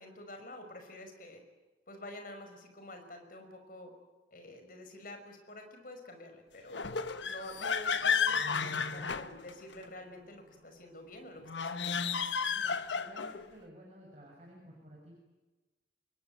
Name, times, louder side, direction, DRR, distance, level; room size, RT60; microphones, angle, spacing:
voice 1, 0.0-1.4 1.9-3.9 4.3-7.0 7.3-12.1, left 1 dB, 50° left, 6 dB, 5.7 m, -48 dB
sound 1, 6.7-9.8 11.4-13.5, left 6 dB, 85° left, 1.2 m, -32 dB
voice 2, 12.5-15.1, equal, 35° right, -1 dB, 6.2 m, -53 dB
27.5 x 22.0 x 9.4 m, 1.2 s
head